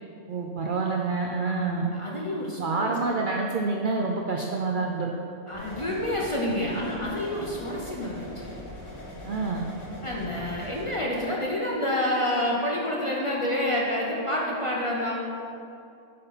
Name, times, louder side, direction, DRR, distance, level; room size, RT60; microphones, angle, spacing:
voice 1, 0.3-1.9 2.6-5.1 9.2-9.6, right 4 dB, 65° right, 1 dB, 0.5 m, -27 dB
voice 2, 1.4-2.9 5.5-8.3 10.0-15.2, left 1 dB, 30° left, -3 dB, 0.6 m, -28 dB
sound 1, 5.5-10.9, left 1 dB, 70° left, 1.9 m, -41 dB
8.6 x 4.2 x 4.0 m, 2.6 s
omnidirectional pair, 1.3 m